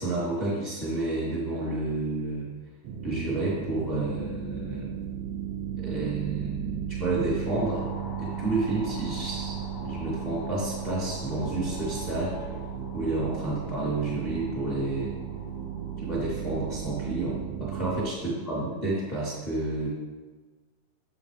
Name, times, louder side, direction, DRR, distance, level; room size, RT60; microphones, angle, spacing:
voice 1, 0.0-2.5 3.0-4.9 5.8-7.8 8.2-12.3 12.9-15.1 16.0-19.9, right 2 dB, 25° left, -7 dB, 1.0 m, -30 dB
sound 1, 2.8-18.1, right 9 dB, 85° right, 2.3 m, -35 dB
sound 2, 7.5-16.2, left 2 dB, 70° left, 1.6 m, -45 dB
sound 3, 8.9-12.5, left 3 dB, 90° left, 4.2 m, -47 dB
11.5 x 7.7 x 3.5 m, 1.3 s
omnidirectional pair, 5.5 m